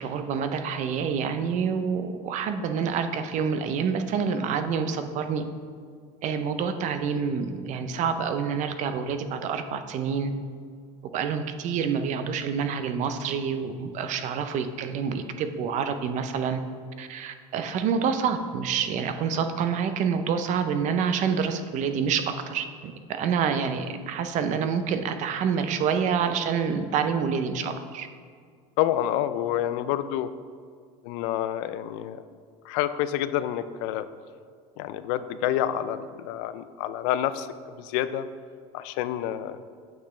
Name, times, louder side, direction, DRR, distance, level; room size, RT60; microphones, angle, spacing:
voice 1, 0.0-5.5 6.2-10.3 11.1-16.6 17.0-28.1, right 6 dB, 55° right, 9 dB, 0.6 m, -27 dB
voice 2, 28.8-30.3 31.0-32.2 32.6-34.1 34.8-37.5 37.8-38.3 38.7-39.6, left 12 dB, 85° left, 13 dB, 0.4 m, -28 dB
8.6 x 6.1 x 3.2 m, 2.1 s
cardioid pair, 120°, 15 cm